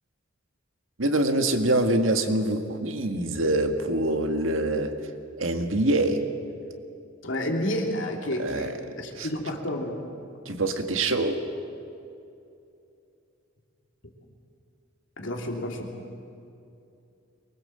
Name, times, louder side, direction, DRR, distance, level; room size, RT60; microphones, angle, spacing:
voice 1, 1.0-4.9 5.4-6.2 8.4-8.7 9.2-9.3 10.4-11.4, right 1 dB, 80° right, 6 dB, 1.7 m, -25 dB
voice 2, 7.2-10.0 14.0-14.1 15.2-15.9, left 1 dB, 65° left, 1 dB, 3.0 m, -30 dB
23.0 x 19.5 x 7.7 m, 2.7 s
head